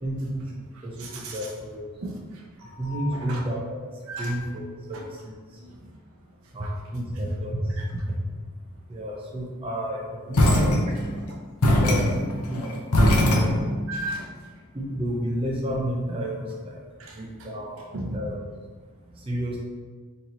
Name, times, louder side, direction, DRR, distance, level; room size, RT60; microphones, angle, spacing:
voice 1, 0.0-1.9 2.8-3.8 4.2-4.6 4.9-5.6 6.5-8.2 8.9-10.7 11.6-13.6 14.7-16.8 17.1-17.8 18.1-18.4 19.2-19.6, equal, 25° right, -4 dB, 0.5 m, -31 dB
voice 2, 0.7-1.5 2.0-3.4 4.1-4.4 4.9-5.0 5.6-5.8 6.6-6.7 7.8-7.9 10.4-10.6 11.3-11.4 13.9-14.3 17.0-17.2 17.9-18.2, right 1 dB, 65° right, -1 dB, 0.6 m, -36 dB
sound 1, 10.3-11.2 11.6-14.0, left 1 dB, 85° left, 0.7 m, -21 dB
3.9 x 2.8 x 2.9 m, 1.5 s
head